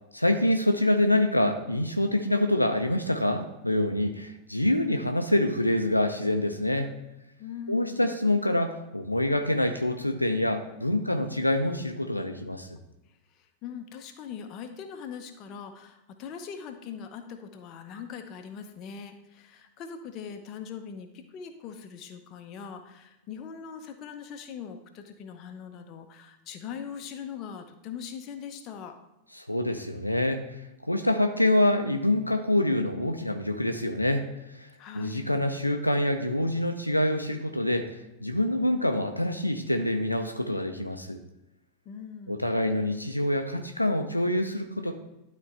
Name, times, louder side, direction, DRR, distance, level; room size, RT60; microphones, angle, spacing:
voice 1, 0.1-6.9 7.7-12.8 29.5-34.7 34.9-41.2 42.3-44.9, left 1 dB, 85° left, 5 dB, 0.5 m, -26 dB
voice 2, 7.4-8.2 13.3-29.0 34.8-35.4 41.8-42.4, left 7 dB, 35° left, 6 dB, 0.8 m, -41 dB
12.0 x 4.2 x 3.3 m, 0.93 s
figure-of-eight pair, 90°, 0 cm